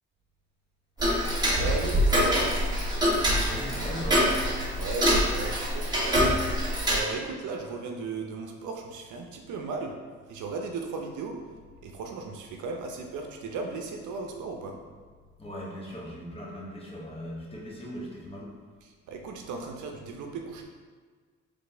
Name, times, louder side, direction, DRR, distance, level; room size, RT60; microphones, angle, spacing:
Tick-tock, 1.0-7.0, equal, 15° right, 1.4 m, -25 dB
voice 1, 1.5-2.5 4.8-6.6 6.9-10.0 10.3-11.4 11.8-14.8 18.8-20.6, right 4 dB, 75° right, 2 dB, 0.6 m, -36 dB
voice 2, 3.4-4.2 15.4-18.5, equal, 20° left, -4 dB, 1.1 m, -39 dB
4.0 x 3.3 x 3.4 m, 1.5 s
cardioid pair, 90°, 30 cm